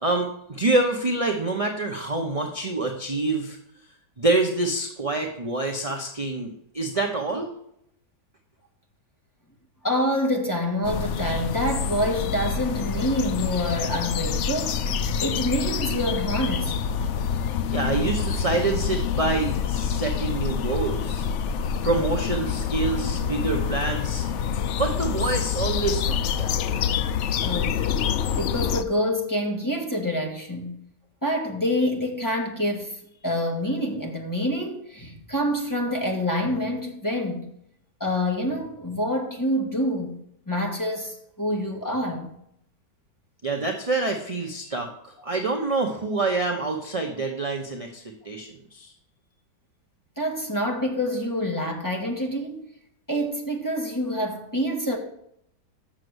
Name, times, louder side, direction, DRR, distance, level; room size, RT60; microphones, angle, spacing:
voice 1, 0.0-3.6 4.2-7.5 17.7-21.3 21.8-24.3 24.8-26.8 43.4-48.9, right 3 dB, 25° right, 0.8 m, -26 dB
voice 2, 9.8-14.9 15.2-16.7 27.4-27.8 28.4-30.7 31.2-37.5 38.0-40.1 40.5-42.3 50.2-52.6 53.1-55.0, equal, 10° left, 1.7 m, -27 dB
sound 1, 10.8-28.8, left 7 dB, 75° left, 0.6 m, -27 dB
7.5 x 6.6 x 7.9 m
omnidirectional pair, 1.8 m